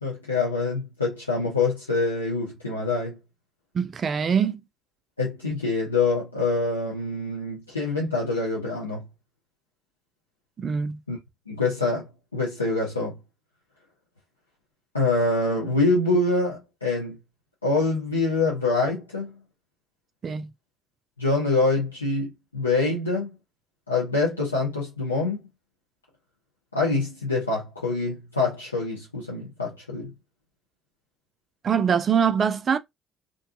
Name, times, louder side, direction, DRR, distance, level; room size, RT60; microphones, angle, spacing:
voice 1, 0.0-3.2 5.2-9.1 11.1-11.2 11.5-13.2 14.9-17.2 17.6-19.4 21.2-23.4 23.9-25.4 26.7-30.1, left 3 dB, 90° left, 0.5 m, -25 dB
voice 2, 3.7-4.6 10.6-11.0 20.2-20.5 31.6-32.8, right 7 dB, 40° right, 0.3 m, -23 dB
2.5 x 2.2 x 2.5 m
figure-of-eight pair, 50°, 0 cm